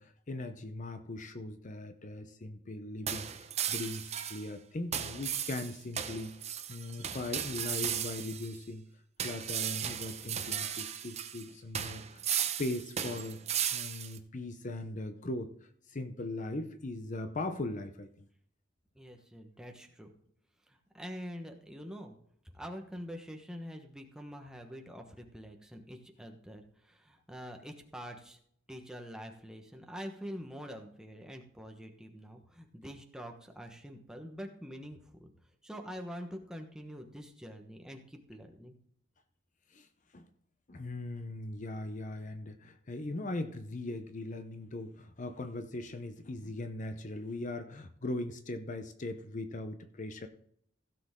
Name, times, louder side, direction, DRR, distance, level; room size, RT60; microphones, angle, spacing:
voice 1, 0.0-6.3 6.7-8.9 9.2-13.4 13.7-18.3 39.7-39.9 40.1-40.3 40.7-50.3, left 2 dB, 40° left, 9 dB, 0.7 m, -39 dB
sound 1, 3.1-4.5 4.9-8.6 9.2-11.4 11.7-14.2, right 9 dB, 35° right, 0.8 m, -36 dB
voice 2, 18.9-20.1 20.7-22.2 22.4-28.4 28.7-35.3 35.6-38.8, equal, 5° right, 3 dB, 1.2 m, -45 dB
16.0 x 6.9 x 3.7 m, 0.67 s
head